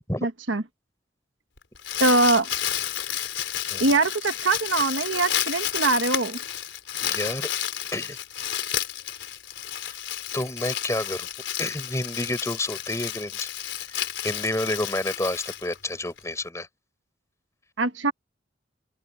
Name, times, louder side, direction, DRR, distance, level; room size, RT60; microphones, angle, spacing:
voice 1, 0.2-0.6 2.0-2.5 3.8-6.4 17.8-18.1, right 3 dB, 90° right, 1.3 m, -22 dB
Crumpling crinkling, 1.6-16.2, left 11 dB, 80° left, 3.8 m, -31 dB
voice 2, 7.0-7.5 7.9-8.2 10.3-11.3 11.6-13.5 13.8-16.7, left 1 dB, 15° left, 6.9 m, -29 dB
open air
head